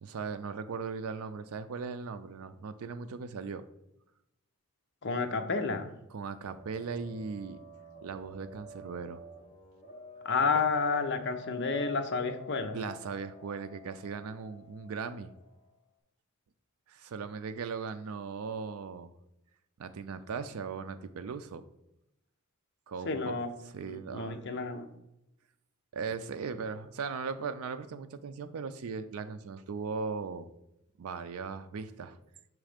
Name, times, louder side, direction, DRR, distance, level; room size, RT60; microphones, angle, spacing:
voice 1, 0.0-3.6 6.1-7.6 8.0-9.2 12.7-15.3 16.9-19.1 19.8-21.6 22.9-23.3 23.6-24.4 25.9-30.5 31.0-32.2, right 5 dB, 85° right, 10 dB, 0.4 m, -38 dB
voice 2, 5.0-5.9 10.2-12.8 23.0-23.5 24.1-24.9, left 4 dB, 55° left, 6 dB, 0.7 m, -30 dB
sound 1, 6.5-15.7, left 1 dB, 25° left, 1.3 m, -48 dB
6.1 x 3.2 x 5.0 m, 0.86 s
head